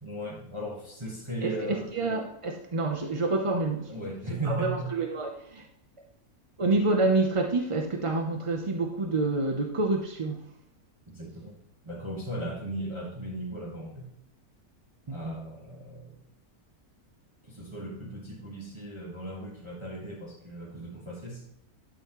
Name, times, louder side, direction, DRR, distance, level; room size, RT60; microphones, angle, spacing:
voice 1, 0.0-1.9 3.9-4.9 11.1-14.1 15.1-16.2 17.4-21.4, right 1 dB, 20° right, -4 dB, 1.5 m, -37 dB
voice 2, 1.4-3.9 4.4-5.7 6.6-10.4 15.1-15.4, right 3 dB, 35° right, 3 dB, 0.5 m, -28 dB
11.5 x 6.3 x 3.1 m, 0.79 s
omnidirectional pair, 1.6 m